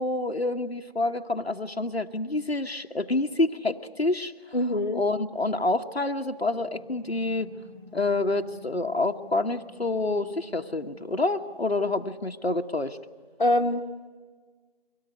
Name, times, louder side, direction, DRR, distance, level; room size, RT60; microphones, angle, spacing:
voice 1, 0.0-4.3 4.9-7.5 7.9-13.0, left 2 dB, 85° left, 5 dB, 1.2 m, -27 dB
voice 2, 4.5-5.0 13.4-14.1, left 1 dB, 50° left, 4 dB, 1.2 m, -25 dB
sound 1, 6.5-12.2, left 2 dB, 55° right, 5.9 m, -51 dB
24.0 x 18.0 x 8.1 m, 1.5 s
figure-of-eight pair, 170°, 30 cm